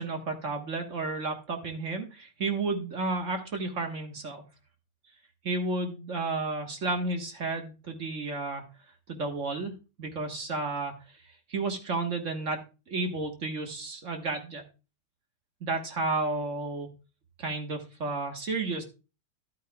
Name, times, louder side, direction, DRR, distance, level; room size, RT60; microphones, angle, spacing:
voice 1, 0.0-4.4 5.4-8.6 9.1-9.7 10.0-10.9 11.5-14.6 15.6-16.9 17.4-18.8, right 3 dB, 45° right, 4 dB, 1.6 m, -32 dB
12.5 x 8.5 x 2.2 m, 0.30 s
omnidirectional pair, 1.9 m